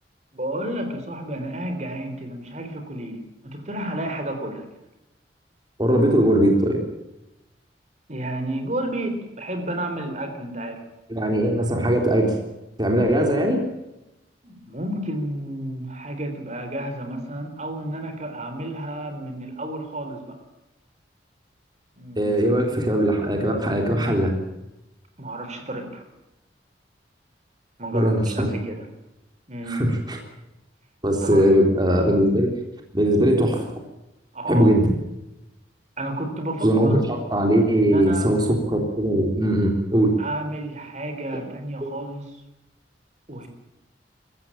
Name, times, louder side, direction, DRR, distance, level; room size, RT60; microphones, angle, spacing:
voice 1, 0.3-4.7 8.1-10.8 14.4-20.4 22.0-22.3 25.2-26.0 27.8-28.9 29.5-29.8 31.2-31.5 34.3-34.7 36.0-37.0 37.8-38.3 40.2-42.4 43.3-43.5, right 1 dB, 40° right, 6 dB, 3.8 m, -31 dB
voice 2, 5.8-6.8 11.1-12.4 12.8-13.6 22.2-24.3 27.9-28.5 29.7-30.2 31.0-32.5 32.9-33.7 34.5-34.9 36.6-40.1, right 1 dB, 25° right, 2 dB, 3.7 m, -20 dB
24.5 x 15.5 x 8.9 m, 0.93 s
head